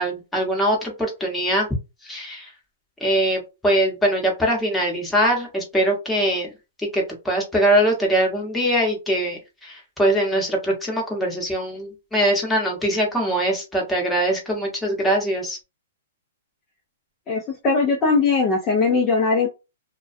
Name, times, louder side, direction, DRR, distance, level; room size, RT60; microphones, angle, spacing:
voice 1, 0.0-1.7 2.0-2.5 3.0-6.5 6.8-15.6, right 1 dB, 5° left, -1 dB, 0.9 m, -22 dB
voice 2, 17.3-19.5, left 4 dB, 25° left, 0 dB, 0.5 m, -20 dB
2.2 x 2.2 x 2.5 m, 0.27 s
hypercardioid pair, 145°, 0 cm